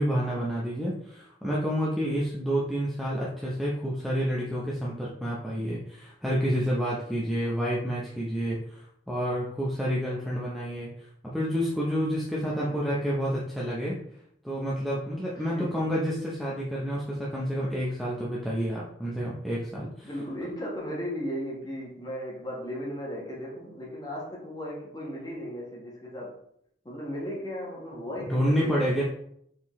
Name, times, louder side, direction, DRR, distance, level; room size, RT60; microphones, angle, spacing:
voice 1, 0.0-14.0 14.4-20.1 28.2-29.0, equal, ahead, -7 dB, 0.6 m, -29 dB
voice 2, 12.4-12.8 15.3-15.8 20.0-26.3 26.8-29.0, equal, 20° left, -4 dB, 1.2 m, -36 dB
4.4 x 3.7 x 3.0 m, 0.71 s
head